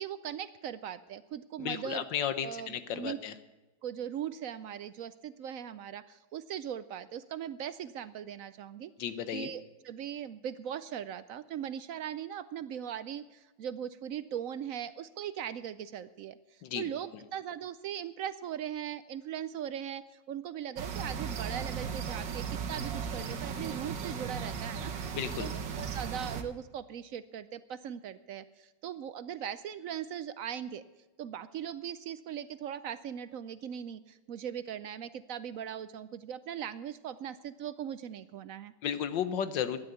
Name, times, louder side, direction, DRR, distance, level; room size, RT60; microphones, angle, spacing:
voice 1, 0.0-2.1 2.4-3.2 3.8-8.9 9.3-24.9 25.4-30.8 31.2-38.7, right 9 dB, 70° right, 14 dB, 0.8 m, -39 dB
voice 2, 1.6-3.3 9.0-9.5 16.6-16.8 25.1-25.5 38.8-39.8, left 9 dB, 85° left, 12 dB, 1.7 m, -33 dB
sound 1, 20.8-26.4, right 6 dB, 85° right, 1.9 m, -36 dB
13.0 x 10.5 x 8.1 m, 1.1 s
omnidirectional pair, 1.9 m